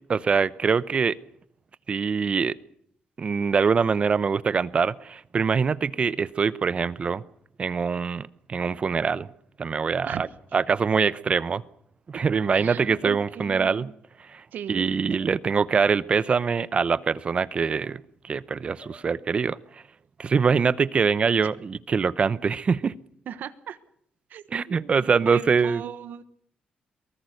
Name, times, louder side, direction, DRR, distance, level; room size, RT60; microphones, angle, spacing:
voice 1, 0.1-1.2 1.9-2.6 3.2-7.2 7.6-9.3 9.6-10.3 10.5-11.6 12.1-13.9 14.2-19.8 20.2-22.9 24.5-25.8, right 5 dB, 35° right, 0.7 m, -24 dB
sound 1, 7.2-7.3 8.4-8.5 8.7-8.8 10.9-11.3 12.1-12.3 12.9-13.6 15.1-15.4 16.5-18.2 18.8-19.2 19.4-19.7 20.5-20.8 21.8-22.1, left 2 dB, 55° left, 7.1 m, -53 dB
voice 2, 12.5-13.9 14.5-14.9 21.4-21.5 23.3-23.8 24.3-26.2, right 9 dB, 70° right, 1.2 m, -37 dB
23.0 x 19.5 x 6.6 m
cardioid pair, 120°, 3 cm